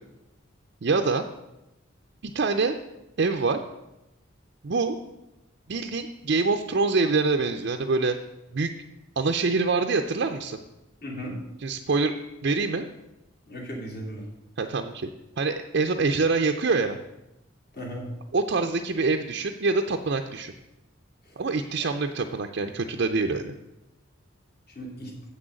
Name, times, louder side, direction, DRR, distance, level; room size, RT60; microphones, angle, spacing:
voice 1, 0.8-1.2 2.2-2.8 3.2-3.6 4.6-5.0 5.7-8.2 8.5-8.7 9.2-10.6 11.6-12.1 12.4-12.9 14.6-15.1 15.4-17.0 18.3-20.5 21.4-23.5, right 3 dB, 55° right, 5 dB, 0.5 m, -25 dB
voice 2, 11.0-11.4 13.5-14.3 17.7-18.1 21.2-21.3 21.8-21.9 24.7-25.1, equal, 45° left, -1 dB, 2.6 m, -36 dB
7.8 x 6.2 x 7.7 m, 0.95 s
head